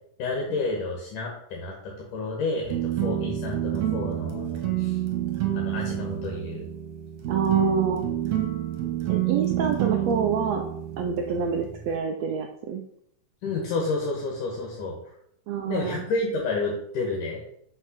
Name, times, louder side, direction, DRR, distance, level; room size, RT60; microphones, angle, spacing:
voice 1, 0.2-5.0 5.5-6.6 13.4-15.1 15.7-17.4, left 3 dB, 75° left, -1 dB, 3.0 m, -30 dB
sound 1, 2.7-12.0, right 12 dB, 60° right, 2.4 m, -28 dB
voice 2, 7.3-8.1 9.1-10.7 11.0-12.8 15.5-16.0, right 6 dB, 75° right, 3 dB, 1.6 m, -27 dB
6.5 x 5.5 x 6.5 m, 0.71 s
omnidirectional pair, 3.8 m